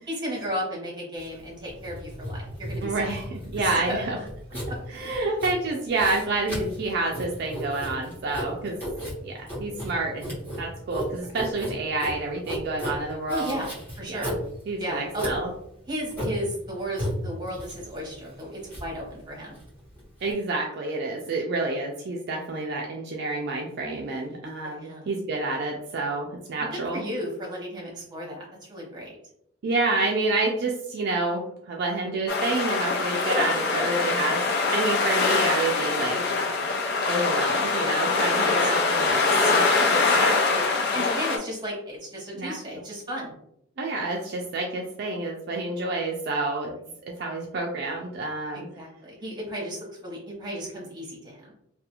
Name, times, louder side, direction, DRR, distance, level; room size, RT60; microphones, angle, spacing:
voice 1, 0.1-3.1 3.6-4.2 5.2-5.4 13.3-14.3 14.8-15.3 15.9-19.6 24.6-25.1 26.6-29.2 38.4-38.5 39.0-39.5 39.9-43.3 48.7-51.5, equal, 20° right, -3 dB, 0.9 m, -34 dB
Writing, 1.2-20.3, equal, 10° left, 0.9 m, -35 dB
voice 2, 2.8-4.2 4.9-8.8 9.2-13.5 14.1-14.3 14.7-15.5 20.2-27.0 29.6-34.4 34.7-36.2 37.1-39.9 42.4-42.6 43.8-46.7 47.2-48.7, right 3 dB, 55° right, 0 dB, 0.3 m, -28 dB
sound 1, 32.3-41.4, left 4 dB, 55° left, 0.4 m, -23 dB
2.4 x 2.3 x 2.8 m, 0.74 s
head